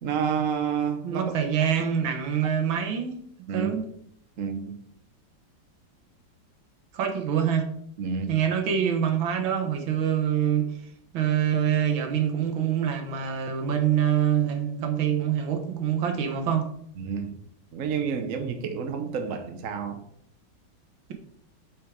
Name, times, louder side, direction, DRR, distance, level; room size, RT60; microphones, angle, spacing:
voice 1, 0.0-1.3 3.5-3.7 4.4-4.8 8.0-8.3 17.0-17.4 17.7-20.0, right 6 dB, 55° right, 0.9 m, -29 dB
voice 2, 1.0-3.2 3.5-3.8 6.9-7.7 8.3-10.7 11.1-16.7, right 9 dB, 75° right, 1.9 m, -25 dB
6.6 x 6.5 x 4.8 m
omnidirectional pair, 2.2 m